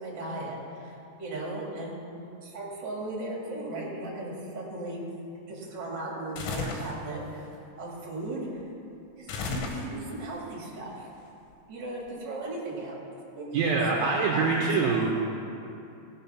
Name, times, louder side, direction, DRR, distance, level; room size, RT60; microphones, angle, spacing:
voice 1, 0.0-2.0 2.4-5.0 5.5-8.5 9.2-11.1 11.7-15.0, right 2 dB, 30° right, -4 dB, 2.3 m, -37 dB
sound 1, 6.4-7.0 9.3-10.2, left 4 dB, 75° left, 3.2 m, -33 dB
voice 2, 13.5-15.3, right 4 dB, 80° right, -2 dB, 2.1 m, -25 dB
17.0 x 6.3 x 5.8 m, 2.8 s
omnidirectional pair, 5.5 m